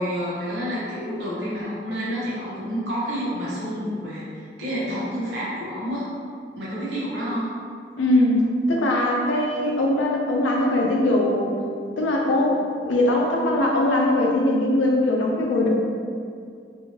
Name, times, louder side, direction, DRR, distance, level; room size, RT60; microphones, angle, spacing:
voice 1, 0.0-6.1 6.6-7.5, equal, 60° right, -8 dB, 1.0 m, -29 dB
voice 2, 8.0-11.5 12.0-15.7, left 1 dB, 85° left, -1 dB, 0.5 m, -21 dB
2.9 x 2.6 x 2.8 m, 2.3 s
head